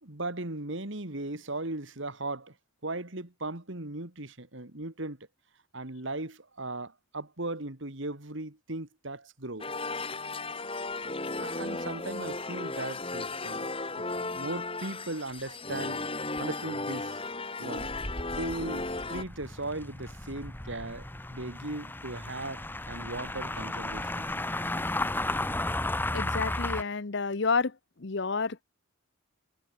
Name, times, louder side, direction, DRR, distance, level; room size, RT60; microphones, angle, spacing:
voice 1, 0.0-2.5 2.8-5.3 5.7-9.7 11.4-16.1 16.4-17.3 17.6-17.9 18.3-24.3, right 2 dB, 60° right, 2.3 m, -38 dB
sound 1, 9.6-19.2, left 3 dB, 25° left, 4.1 m, -35 dB
sound 2, 17.8-26.8, left 2 dB, 10° left, 1.0 m, -34 dB
voice 2, 26.1-27.7 28.0-28.6, left 4 dB, 55° left, 0.8 m, -29 dB
head